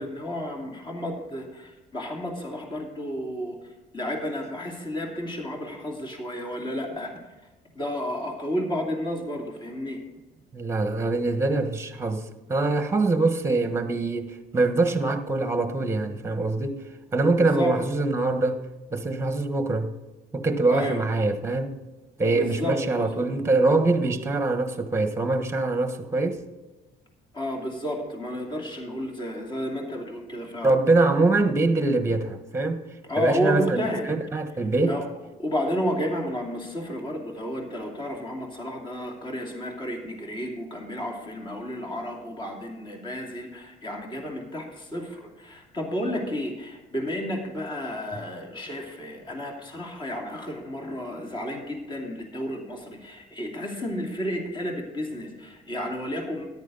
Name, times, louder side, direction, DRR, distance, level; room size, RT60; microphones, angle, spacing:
voice 1, 0.0-3.6 3.9-7.2 7.7-10.0 17.4-17.8 20.7-21.0 22.3-23.3 27.3-30.7 33.1-34.1 34.9-35.1 35.4-56.5, equal, 30° left, 2.7 m, -31 dB
voice 2, 10.5-16.8 17.1-18.6 18.9-19.9 20.3-21.8 22.2-26.4 30.6-32.8 33.2-35.0, right 3 dB, 15° right, 1.3 m, -24 dB
13.5 x 11.0 x 4.0 m
cardioid pair, 110°, 17 cm